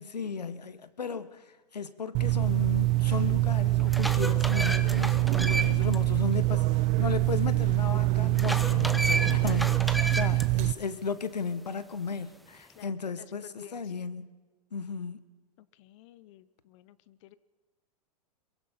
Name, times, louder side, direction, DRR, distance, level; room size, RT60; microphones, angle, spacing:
voice 1, 0.0-14.3 14.7-15.2, left 5 dB, 90° left, 1.5 m, -35 dB
sound 1, 2.1-10.7, right 18 dB, 35° right, 0.6 m, -25 dB
sound 2, 3.0-3.1 3.6-6.0 6.3-6.4 8.3-10.5, right 1 dB, ahead, 1.1 m, -32 dB
voice 2, 5.5-6.1 9.4-9.6 9.9-10.2 12.7-13.9 14.8-15.1 15.6-17.4, left 14 dB, 50° left, 0.9 m, -52 dB
23.0 x 22.5 x 5.8 m
hypercardioid pair, 115°, 20 cm